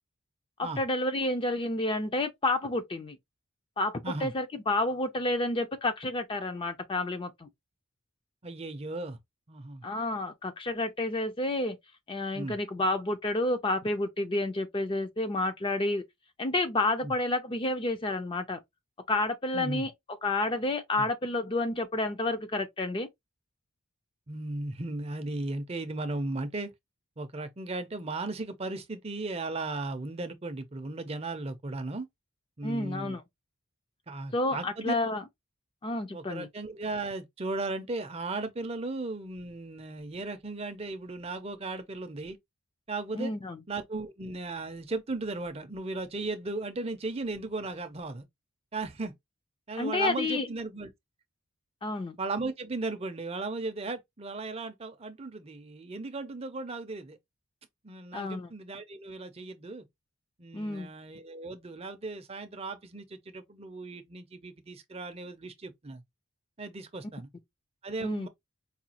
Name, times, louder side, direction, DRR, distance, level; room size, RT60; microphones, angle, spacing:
voice 1, 0.6-3.2 3.8-7.5 9.8-11.8 12.1-16.0 16.4-18.6 19.1-19.9 20.2-23.1 32.6-33.2 34.3-35.2 35.8-36.5 43.2-43.6 49.8-50.5 51.8-52.2 58.1-58.5 60.5-60.9 68.0-68.3, left 2 dB, 25° left, 0.4 m, -30 dB
voice 2, 8.4-9.2 9.5-9.9 12.3-12.6 17.0-17.1 19.5-19.9 21.0-21.1 24.3-26.7 27.2-32.1 32.6-33.2 34.1-35.0 36.1-42.4 42.9-43.3 43.7-48.2 48.7-49.1 49.7-50.9 52.2-57.2 57.8-59.9 60.4-66.0 66.6-67.3 67.8-68.3, right 3 dB, 25° right, 0.5 m, -36 dB
4.8 x 2.3 x 2.8 m
head